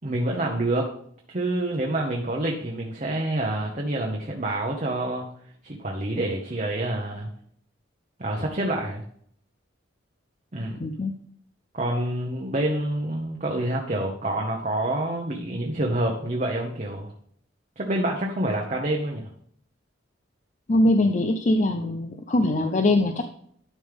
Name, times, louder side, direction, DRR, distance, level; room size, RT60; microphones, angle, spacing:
voice 1, 0.0-0.9 1.3-5.3 5.6-7.3 8.2-9.0 10.5-10.9 11.7-17.1 17.8-19.3, right 1 dB, 40° right, 0 dB, 1.0 m, -27 dB
voice 2, 10.8-11.1 20.7-23.3, left 1 dB, 40° left, 6 dB, 0.5 m, -22 dB
11.5 x 5.3 x 3.5 m, 0.63 s
head